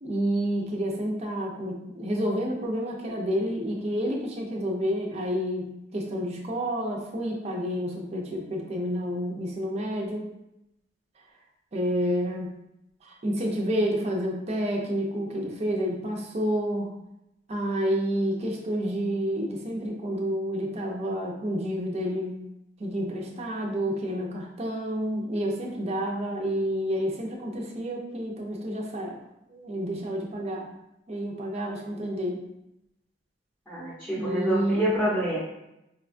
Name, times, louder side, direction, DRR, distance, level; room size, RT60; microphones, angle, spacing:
voice 1, 0.0-10.3 11.7-12.6 13.0-16.9 17.5-22.4 22.8-29.2 29.5-30.7 31.1-32.4 34.1-34.9, equal, 35° right, -1 dB, 0.5 m, -29 dB
voice 2, 33.7-35.4, right 1 dB, 10° left, -9 dB, 0.8 m, -27 dB
4.2 x 2.2 x 2.5 m, 0.87 s
head